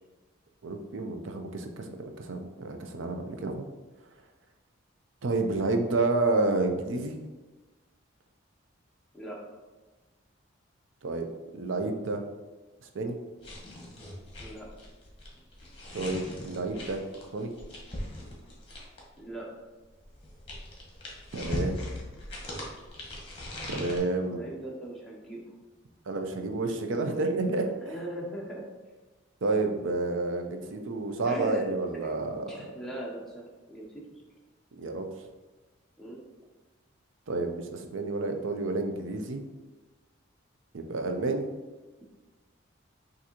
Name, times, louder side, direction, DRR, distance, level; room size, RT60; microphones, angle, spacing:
voice 1, 0.6-3.7 5.2-7.2 11.0-11.3 11.5-12.2 12.9-13.2 15.9-17.0 17.3-17.5 21.3-21.8 23.7-24.5 26.1-27.7 29.4-32.4 34.7-35.1 37.3-39.4 40.7-41.4, right 3 dB, 75° right, 5 dB, 0.5 m, -30 dB
sound 1, 13.4-19.2 20.0-24.0, left 1 dB, 30° left, 0.9 m, -39 dB
voice 2, 19.2-19.5 24.3-25.6 27.7-28.7 30.6-30.7 31.2-31.6 31.9-32.2 32.5-34.2 36.0-36.2, right 1 dB, ahead, -4 dB, 0.5 m, -40 dB
5.9 x 2.6 x 2.8 m, 1.2 s
head